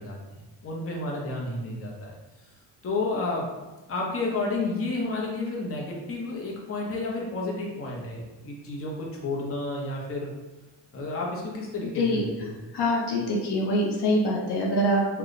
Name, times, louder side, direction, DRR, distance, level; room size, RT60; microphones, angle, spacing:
voice 1, 0.0-2.1 2.8-3.5 3.9-10.3 10.9-12.5, left 2 dB, 30° left, -2 dB, 0.8 m, -31 dB
voice 2, 12.7-15.2, equal, 60° left, -2 dB, 0.8 m, -24 dB
3.3 x 2.3 x 3.9 m, 1.1 s
cardioid pair, 105°, 45 cm